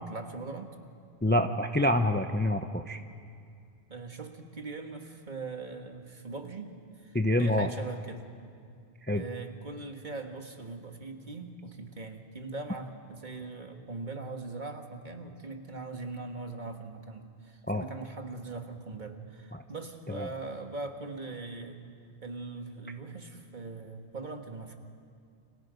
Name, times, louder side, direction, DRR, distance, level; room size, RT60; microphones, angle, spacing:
voice 1, 0.1-0.7 3.9-8.3 9.1-21.8 22.2-24.8, right 3 dB, 45° right, 4 dB, 1.8 m, -41 dB
voice 2, 1.2-3.0 7.1-7.7 9.1-9.2 17.7-17.8 19.5-19.6 20.1-20.3, left 1 dB, 10° left, 7 dB, 0.7 m, -26 dB
29.5 x 26.0 x 5.2 m, 2.3 s
omnidirectional pair, 1.1 m